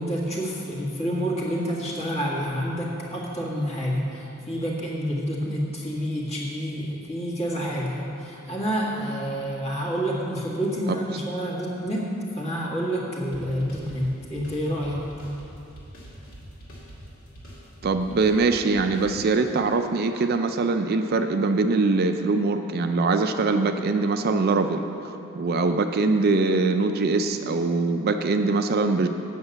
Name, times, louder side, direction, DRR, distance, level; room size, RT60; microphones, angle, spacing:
voice 1, 0.0-15.1, equal, 30° left, -4 dB, 1.8 m, -28 dB
sound 1, 13.3-19.7, equal, 70° left, 2.6 m, -44 dB
voice 2, 17.8-24.8 25.3-29.1, right 3 dB, 45° right, 7 dB, 0.4 m, -22 dB
7.9 x 6.6 x 8.0 m, 2.8 s
head